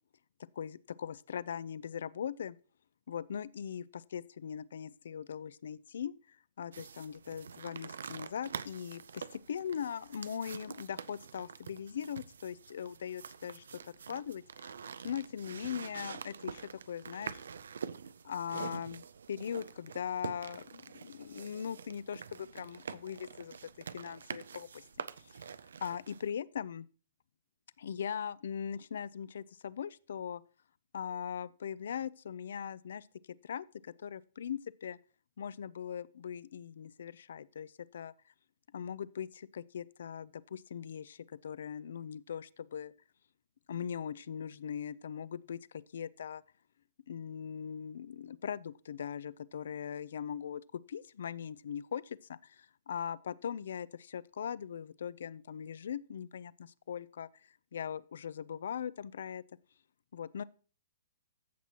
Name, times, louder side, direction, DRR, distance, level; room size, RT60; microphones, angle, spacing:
voice 1, 0.6-2.6 3.1-13.6 14.1-14.7 15.0-17.4 18.2-24.8 25.3-25.4 25.8-26.9 27.8-30.4 30.9-35.0 35.4-38.1 38.7-42.9 43.7-46.4 47.1-59.4 60.1-60.4, left 8 dB, 70° left, 0.4 m, -40 dB
sound 1, 6.7-26.3, right 6 dB, 80° right, 0.4 m, -46 dB
14.5 x 6.0 x 2.9 m
hypercardioid pair, 140°, 0 cm